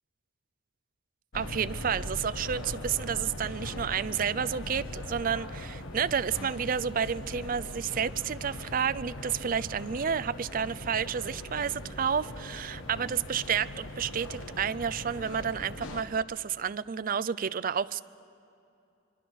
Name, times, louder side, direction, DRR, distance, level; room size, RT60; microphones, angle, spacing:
sound 1, 1.3-16.0, left 1 dB, 85° left, 1.6 m, -40 dB
voice 1, 1.3-18.0, right 7 dB, 45° right, 16 dB, 0.4 m, -30 dB
26.5 x 23.0 x 6.3 m, 2.6 s
head